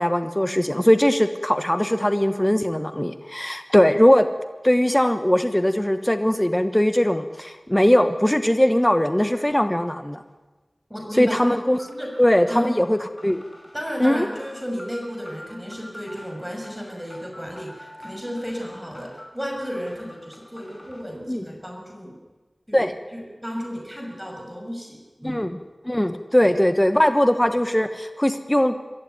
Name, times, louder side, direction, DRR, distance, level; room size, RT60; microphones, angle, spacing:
voice 1, 0.0-4.3 4.6-10.2 11.2-11.8 12.2-13.0 13.2-13.4 14.0-14.3 21.3-21.4 22.7-22.9 25.2-25.6 25.8-28.8, equal, 15° left, 9 dB, 1.2 m, -20 dB
voice 2, 10.9-11.5 11.9-12.2 12.5-12.7 13.7-22.2 22.7-25.5 26.4-26.5, equal, 5° right, 1 dB, 6.1 m, -33 dB
sound 1, 11.8-21.0, left 1 dB, 30° left, 5.9 m, -46 dB
23.5 x 14.5 x 9.5 m, 1.2 s
wide cardioid pair, 45°, 0 cm